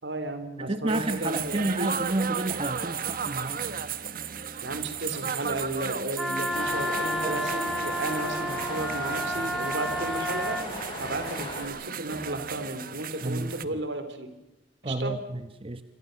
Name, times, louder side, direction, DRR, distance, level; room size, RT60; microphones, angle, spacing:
voice 1, 0.0-1.9 4.6-10.6 11.0-14.3 14.8-15.3, right 2 dB, 70° right, 9 dB, 3.9 m, -34 dB
voice 2, 0.6-3.6 7.2-7.4 13.2-13.5 14.8-15.8, right 2 dB, 30° right, 9 dB, 1.0 m, -30 dB
sound 1, 0.9-13.6, right 7 dB, 50° right, 1.3 m, -35 dB
Wind instrument woodwind instrument, 6.2-10.7, equal, ahead, 0.9 m, -31 dB
sound 2, 6.5-11.7, left 1 dB, 25° left, 7.8 m, -38 dB
27.0 x 26.0 x 6.9 m, 0.94 s
head